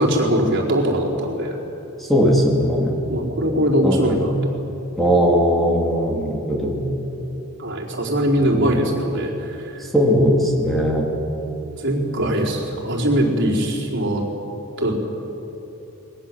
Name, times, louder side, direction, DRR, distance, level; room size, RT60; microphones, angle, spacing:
voice 1, 0.0-1.6 3.1-4.4 7.6-9.8 11.8-14.2 14.8-14.9, equal, 55° right, -3 dB, 4.4 m, -21 dB
voice 2, 2.1-3.0 3.8-4.3 5.0-6.8 8.5-8.8 9.9-11.1 12.2-12.3, equal, ahead, -2 dB, 3.3 m, -19 dB
28.0 x 21.5 x 7.6 m, 3.0 s
head